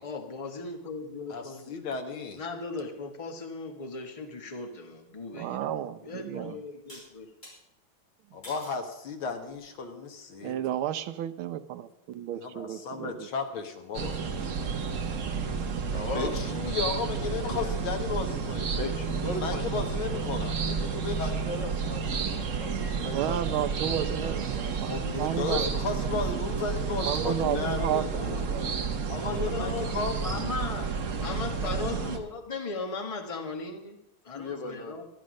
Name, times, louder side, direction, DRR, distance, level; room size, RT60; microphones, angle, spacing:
voice 1, 0.0-1.8 2.4-5.6 6.0-7.3 28.2-28.5 29.1-29.9 30.2-30.9 31.2-34.0 34.2-35.0, left 4 dB, 20° left, 5 dB, 1.2 m, -37 dB
voice 2, 1.3-2.4 8.3-10.6 12.3-14.1 16.1-18.8 19.4-21.4 24.9-28.1 29.4-30.3, left 5 dB, 75° left, 6 dB, 2.2 m, -34 dB
voice 3, 5.3-6.6 10.4-13.3 22.9-25.6 27.0-27.6 27.8-28.8, right 11 dB, 80° right, 10 dB, 1.6 m, -32 dB
sound 1, 6.9-7.6 8.4-8.8 9.5-9.9, left 1 dB, 35° left, 5.7 m, -48 dB
sound 2, 13.9-32.2, right 5 dB, 45° right, 1.2 m, -31 dB
voice 4, 15.9-16.3 17.2-17.7 18.7-20.5 21.2-22.0 22.6-24.9 25.1-25.7 26.0-26.3 27.4-28.7 29.0-29.5 34.3-35.0, left 3 dB, 60° left, 3 dB, 2.4 m, -38 dB
12.0 x 11.5 x 6.3 m, 0.85 s
omnidirectional pair, 2.3 m